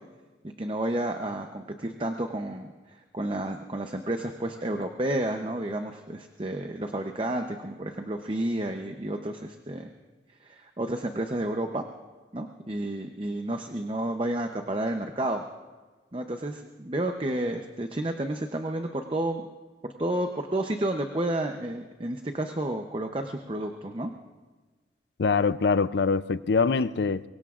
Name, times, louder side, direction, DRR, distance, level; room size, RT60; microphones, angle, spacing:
voice 1, 0.6-2.7 3.1-9.9 10.4-11.8 12.3-15.4 16.1-19.4 19.8-24.1, right 1 dB, 30° right, 0.7 m, -31 dB
voice 2, 25.2-27.2, left 4 dB, 70° left, 0.5 m, -24 dB
24.5 x 23.0 x 2.5 m
head